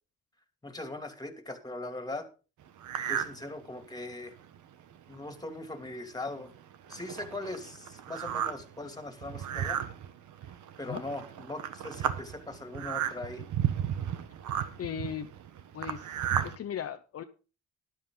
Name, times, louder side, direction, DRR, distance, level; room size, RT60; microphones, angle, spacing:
voice 1, 0.6-2.3 3.1-4.3 5.1-6.5 6.9-9.8 10.8-13.5, left 2 dB, 15° left, 7 dB, 2.7 m, -40 dB
sound 1, 2.8-3.4 3.8-3.9 4.5-4.6 4.9-5.2 5.9-6.0 6.3-16.6, right 10 dB, 75° right, 1.3 m, -34 dB
voice 2, 14.8-15.3 15.7-17.2, left 8 dB, 50° left, 8 dB, 0.9 m, -38 dB
12.5 x 10.5 x 3.9 m, 0.34 s
cardioid pair, 90°, 30 cm